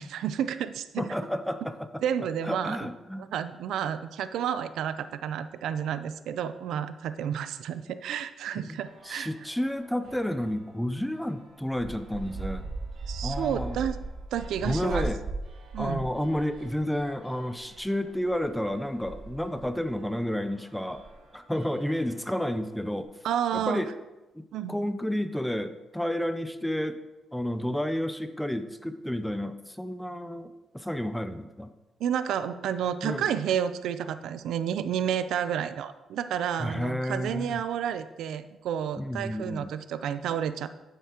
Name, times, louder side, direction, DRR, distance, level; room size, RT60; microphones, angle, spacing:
voice 1, 0.0-1.2 2.0-2.9 3.2-9.3 13.1-14.0 14.3-15.1 15.7-16.1 23.2-23.8 24.5-24.8 32.0-40.7, right 9 dB, 80° right, 12 dB, 0.4 m, -31 dB
voice 2, 1.0-1.8 2.4-3.3 8.7-12.6 13.2-13.8 14.6-15.2 15.8-21.0 21.3-23.1 23.5-23.9 24.3-24.4 24.7-27.0 27.3-31.7 33.0-33.3 36.6-37.6 39.0-39.7, equal, ahead, 10 dB, 0.4 m, -31 dB
sound 1, 8.8-10.7 11.1-22.7, right 3 dB, 55° right, 1.5 m, -40 dB
9.2 x 8.1 x 2.9 m, 1.1 s
cardioid pair, 180°, 0 cm